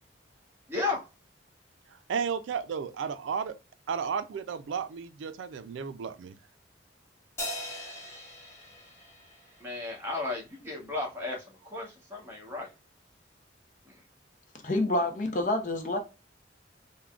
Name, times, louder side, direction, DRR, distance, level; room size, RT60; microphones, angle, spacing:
voice 1, 0.7-1.0 9.6-11.4 11.7-12.7, left 3 dB, 15° right, 1.1 m, -34 dB
voice 2, 2.1-3.5 3.9-6.3, right 6 dB, 85° right, 0.4 m, -33 dB
Crash cymbal, 7.4-10.1, left 1 dB, 15° left, 0.8 m, -40 dB
voice 3, 14.6-16.0, left 1 dB, 45° left, 0.6 m, -27 dB
3.5 x 2.2 x 2.3 m
head